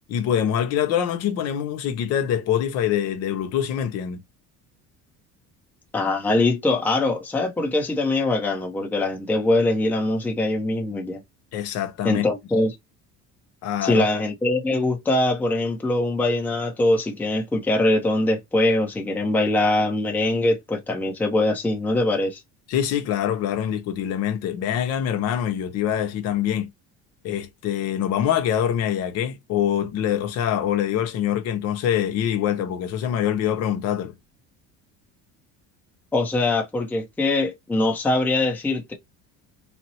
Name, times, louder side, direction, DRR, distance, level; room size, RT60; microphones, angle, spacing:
voice 1, 0.1-4.2 11.5-12.3 13.6-14.0 22.7-26.7 27.2-34.1, left 10 dB, 55° left, 0.7 m, -24 dB
voice 2, 5.9-11.2 12.0-12.8 13.8-22.4 36.1-38.9, left 2 dB, 5° left, 0.6 m, -22 dB
4.1 x 2.0 x 2.7 m
cardioid pair, 165°, 30 cm